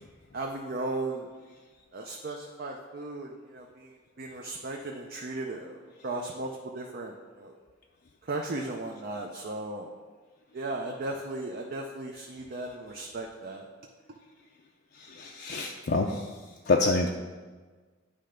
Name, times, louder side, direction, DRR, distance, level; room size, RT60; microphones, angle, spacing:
voice 1, 0.3-1.3 1.9-5.8 6.0-7.5 8.3-9.9 10.5-13.7, right 2 dB, 50° right, 1 dB, 0.5 m, -36 dB
voice 2, 15.2-16.1 16.7-17.1, left 3 dB, 55° left, 1 dB, 0.5 m, -26 dB
9.8 x 3.3 x 5.0 m, 1.4 s
head